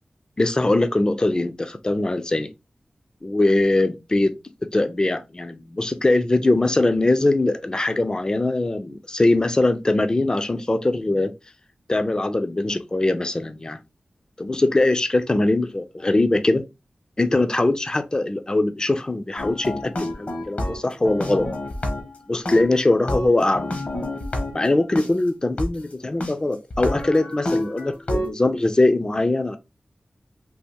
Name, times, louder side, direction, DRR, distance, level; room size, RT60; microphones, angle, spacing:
voice 1, 0.4-2.5 3.2-4.3 4.7-11.3 11.9-13.8 14.4-16.6 17.2-21.5 22.3-23.7 24.5-29.6, left 2 dB, 30° left, 0.4 m, -21 dB
sound 1, 19.4-22.2 22.5-25.1 25.6-25.7 26.2-26.3 26.7-28.3, left 1 dB, 60° left, 0.9 m, -28 dB
3.4 x 2.4 x 2.8 m
cardioid pair, 50°, 3 cm